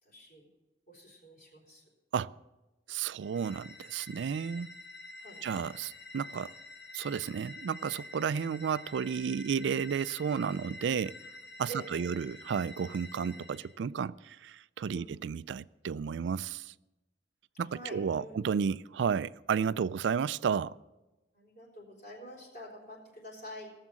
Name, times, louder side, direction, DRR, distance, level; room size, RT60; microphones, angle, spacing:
voice 1, 0.0-0.5 0.9-1.8 5.2-5.5 11.7-12.1 13.1-13.3 14.9-15.1 17.6-18.4 21.3-23.7, right 1 dB, 50° left, 4.0 m, -47 dB
voice 2, 2.9-4.8 5.4-6.5 6.9-11.2 11.6-16.7 17.6-20.8, right 7 dB, 85° right, 0.3 m, -32 dB
sound 1, 3.2-13.7, left 2 dB, 70° left, 1.2 m, -49 dB
17.0 x 7.3 x 7.5 m
head